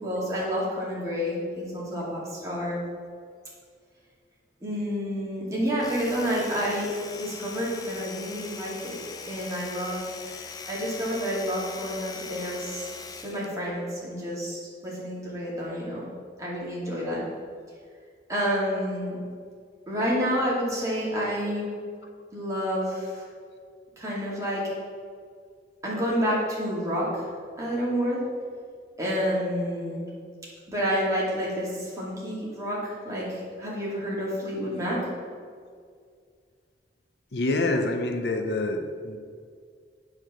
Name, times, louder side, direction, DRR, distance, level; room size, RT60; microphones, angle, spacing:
voice 1, 0.0-2.8 4.6-6.9 7.2-9.0 9.3-10.0 10.7-12.9 13.2-16.0 16.4-17.2 18.3-19.2 19.9-21.7 22.3-23.2 24.0-24.6 25.8-27.2 27.6-28.2 29.0-30.0 30.7-35.0, equal, 20° right, -6 dB, 2.4 m, -29 dB
Domestic sounds home sounds, 5.7-13.5, left 4 dB, 20° left, 0.5 m, -41 dB
voice 2, 37.3-39.2, left 2 dB, 70° left, 4 dB, 0.8 m, -26 dB
9.4 x 4.9 x 6.1 m, 2.1 s
head